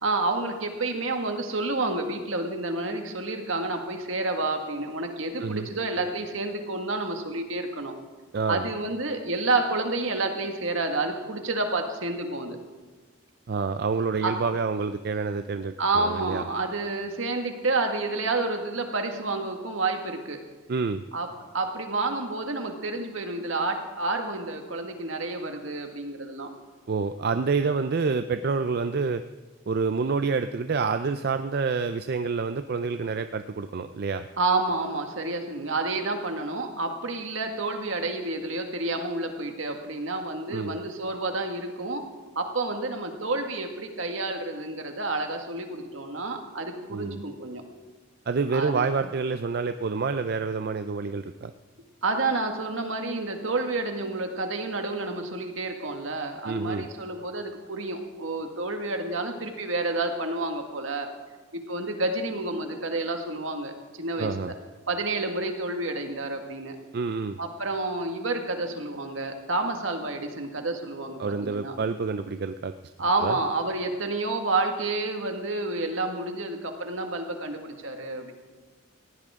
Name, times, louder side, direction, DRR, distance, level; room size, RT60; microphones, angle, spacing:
voice 1, 0.0-8.0 8.5-12.6 14.2-14.3 15.8-20.4 21.1-21.3 21.5-26.5 34.4-42.0 42.4-47.6 48.5-48.9 52.0-61.1 61.5-64.5 64.9-66.8 67.4-71.8 73.0-78.3, right 2 dB, 70° right, 4 dB, 1.8 m, -29 dB
voice 2, 8.3-8.7 13.5-16.4 20.7-21.0 26.9-29.2 29.7-34.3 40.5-40.8 46.9-47.2 48.3-51.5 56.4-56.9 64.2-64.5 66.9-67.4 71.2-72.7 73.2-73.4, right 4 dB, 50° right, 9 dB, 0.4 m, -28 dB
19.0 x 16.0 x 3.7 m, 1.3 s
head